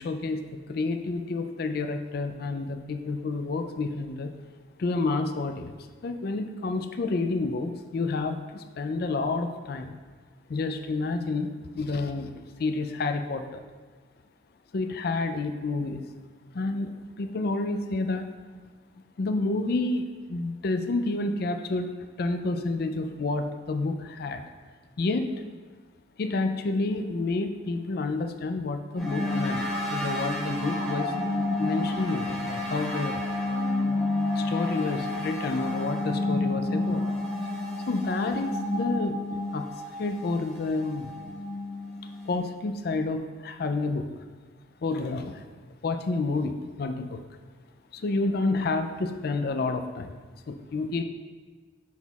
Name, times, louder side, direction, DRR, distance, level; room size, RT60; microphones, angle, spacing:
voice 1, 0.0-4.3 4.8-5.7 6.0-10.0 10.5-12.3 12.6-13.6 14.7-16.0 16.5-18.3 19.2-24.4 25.0-25.3 26.2-31.1 31.6-33.2 34.3-37.1 37.9-39.2 39.5-39.6 40.0-41.1 42.3-44.1 44.8-45.4 45.8-47.2 47.9-50.1 50.5-51.0, left 3 dB, 55° left, 7 dB, 0.4 m, -29 dB
sound 1, 29.0-42.4, left 2 dB, ahead, 1.2 m, -30 dB
7.0 x 6.1 x 2.3 m, 1.4 s
head